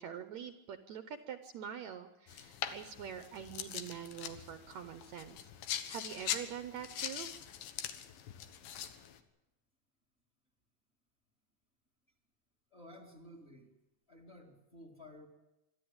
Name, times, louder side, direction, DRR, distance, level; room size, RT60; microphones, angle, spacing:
voice 1, 0.0-7.3, right 8 dB, 70° right, 9 dB, 1.9 m, -45 dB
sound 1, 2.3-9.2, left 9 dB, 90° left, 3.0 m, -42 dB
voice 2, 12.7-13.7 14.1-15.3, left 1 dB, 20° left, 4 dB, 2.3 m, -54 dB
24.5 x 13.5 x 8.8 m, 0.95 s
omnidirectional pair, 3.9 m